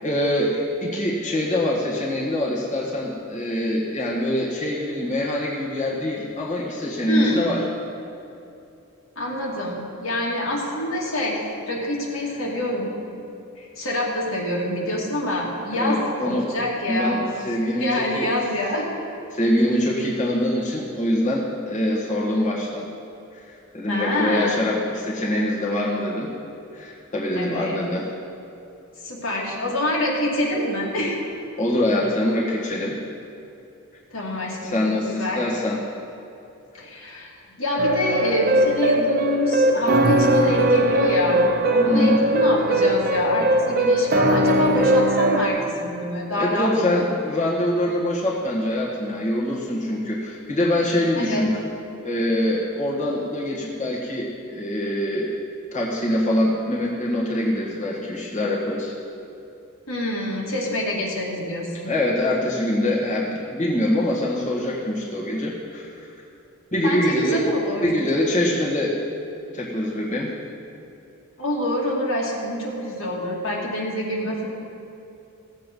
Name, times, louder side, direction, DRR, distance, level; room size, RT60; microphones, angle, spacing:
voice 1, 0.0-7.6 15.7-16.5 16.9-18.3 19.3-22.8 23.7-26.3 26.7-28.0 31.6-33.0 34.6-35.8 41.8-42.2 46.3-51.6 52.0-55.3 55.7-58.9 61.9-65.9 66.7-67.5 67.8-69.0 69.3-70.3 74.2-74.3, left 1 dB, 35° left, -5 dB, 1.6 m, -24 dB
voice 2, 7.1-7.5 9.2-11.4 11.7-12.9 13.6-17.2 17.8-18.9 23.9-24.6 27.3-27.8 29.0-31.2 34.1-35.4 36.7-37.3 37.6-41.4 41.7-47.0 51.2-51.4 59.9-61.9 66.8-67.9 71.4-74.5, left 1 dB, 80° left, -3 dB, 2.5 m, -26 dB
sound 1, 37.8-45.5, right 1 dB, 45° right, 0.9 m, -20 dB
16.5 x 7.5 x 5.4 m, 2.8 s
head